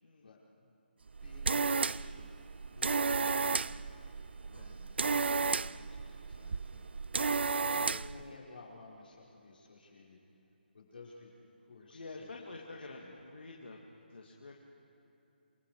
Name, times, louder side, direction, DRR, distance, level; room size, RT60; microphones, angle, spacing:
voice 1, 0.2-2.3 2.7-3.9 4.4-6.9 7.5-10.2 10.7-13.3, left 3 dB, 60° left, -4 dB, 5.7 m, -57 dB
sound 1, 1.1-8.2, right 4 dB, 80° right, 0.4 m, -33 dB
voice 2, 7.7-8.4 11.9-14.6, left 3 dB, 80° left, -1 dB, 2.2 m, -48 dB
28.0 x 22.0 x 4.9 m, 3.0 s
hypercardioid pair, 175°, 6 cm